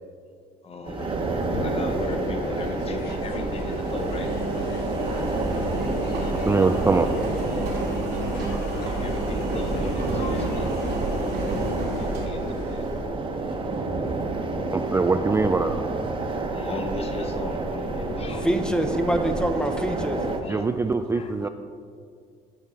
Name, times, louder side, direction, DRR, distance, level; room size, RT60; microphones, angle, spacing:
voice 1, 0.6-4.3 8.7-10.7 11.9-13.6 16.3-18.5 20.4-20.7 21.1-21.3, left 3 dB, 35° left, 5 dB, 1.2 m, -36 dB
sound 1, 0.9-20.4, right 3 dB, 30° right, 1.1 m, -29 dB
sound 2, 1.0-12.3, left 6 dB, 75° left, 0.8 m, -38 dB
Engine, 3.0-13.0, right 2 dB, 90° right, 2.5 m, -32 dB
voice 2, 6.4-7.1 14.7-15.8 20.5-21.5, right 4 dB, 15° right, 7 dB, 0.3 m, -22 dB
voice 3, 18.4-20.3 21.4-21.5, right 1 dB, 5° left, 6 dB, 0.8 m, -25 dB
13.0 x 5.7 x 4.9 m, 2.2 s
cardioid pair, 110°, 17 cm